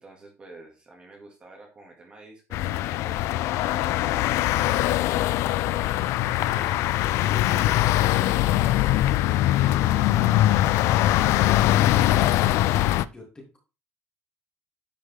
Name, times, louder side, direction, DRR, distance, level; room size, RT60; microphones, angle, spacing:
voice 1, 0.0-7.8 8.2-8.4 9.8-11.3 11.6-12.1, right 2 dB, 20° right, 0 dB, 2.0 m, -49 dB
sound 1, 2.5-13.0, left 14 dB, 70° left, 0.4 m, -22 dB
voice 2, 13.0-13.6, left 2 dB, 15° left, 1 dB, 2.6 m, -47 dB
10.5 x 5.2 x 3.5 m, 0.31 s
cardioid pair, 165°, 5 cm